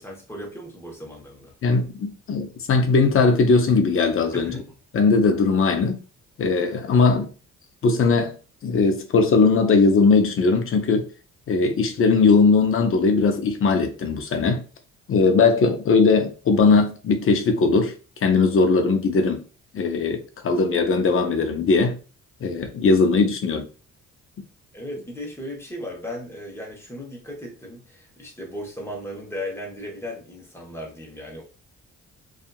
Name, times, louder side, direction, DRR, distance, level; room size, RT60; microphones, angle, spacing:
voice 1, 0.0-1.5 4.3-4.6 24.7-31.4, left 1 dB, 10° left, 1.0 m, -36 dB
voice 2, 1.6-4.6 4.9-6.0 6.4-7.3 7.8-8.4 8.6-11.1 11.5-14.6 15.1-17.9 18.2-19.4 19.7-22.0 22.4-23.7, left 4 dB, 45° left, 0.6 m, -19 dB
2.7 x 2.4 x 2.3 m
cardioid pair, 90°, 30 cm